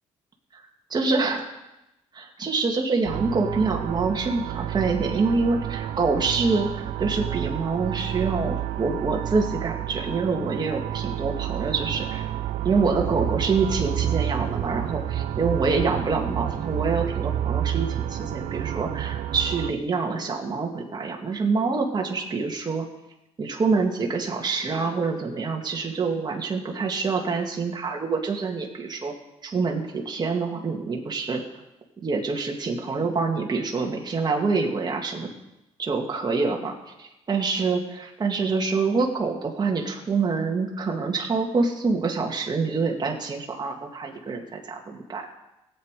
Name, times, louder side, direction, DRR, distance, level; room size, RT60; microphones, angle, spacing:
voice 1, 0.9-1.5 2.1-12.3 12.6-22.8 23.4-29.1 29.4-31.4 32.0-35.3 35.8-45.3, right 4 dB, 35° right, 1 dB, 2.1 m, -26 dB
sound 1, 3.0-19.7, right 11 dB, 80° right, 0.5 m, -29 dB
17.0 x 8.5 x 4.8 m, 0.94 s
cardioid pair, 90°, 13 cm